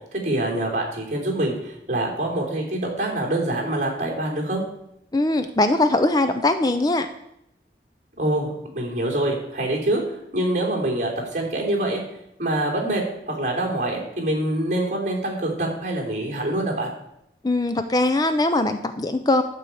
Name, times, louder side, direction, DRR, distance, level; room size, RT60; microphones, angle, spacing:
voice 1, 0.1-4.6 8.2-12.0 12.4-16.9, right 1 dB, 45° right, -1 dB, 3.3 m, -25 dB
voice 2, 5.1-7.1 17.4-19.4, left 2 dB, 20° left, 9 dB, 0.5 m, -21 dB
12.0 x 4.6 x 8.5 m, 0.80 s
head